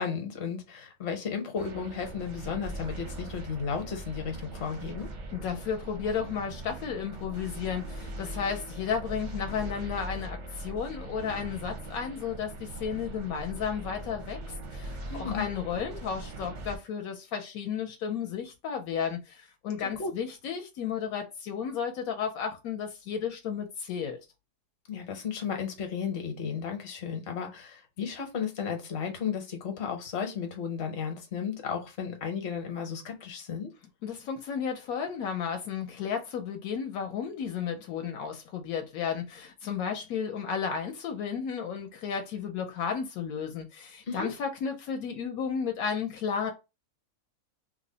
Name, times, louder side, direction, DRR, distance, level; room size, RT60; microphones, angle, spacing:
voice 1, 0.0-5.1 15.1-15.4 19.8-20.1 24.9-33.7 44.1-44.3, left 6 dB, 50° left, 1.0 m, -34 dB
sound 1, 1.6-16.8, right 2 dB, 55° right, 0.5 m, -40 dB
voice 2, 5.3-24.2 34.0-46.5, left 7 dB, 80° left, 1.0 m, -33 dB
3.2 x 2.0 x 3.8 m
omnidirectional pair, 1.5 m